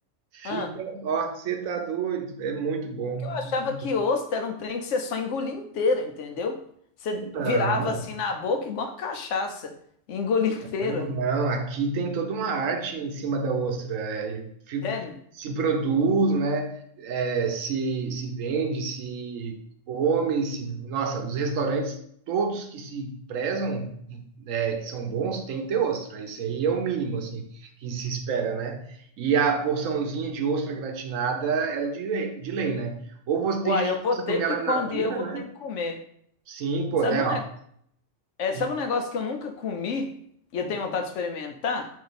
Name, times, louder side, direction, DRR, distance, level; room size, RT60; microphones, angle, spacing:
voice 1, 0.3-3.8 7.2-8.0 10.8-14.9 15.4-19.6 19.9-22.0 22.3-27.5 27.8-33.0 33.3-35.4 36.5-37.4 38.5-38.6, right 5 dB, 80° right, 5 dB, 1.1 m, -28 dB
voice 2, 3.2-6.6 7.0-9.7 10.1-11.1 14.8-15.1 33.6-36.0 37.0-37.4 38.4-40.1 40.5-41.9, left 4 dB, 70° left, 4 dB, 1.0 m, -28 dB
5.0 x 2.7 x 4.0 m, 0.68 s
omnidirectional pair, 1.3 m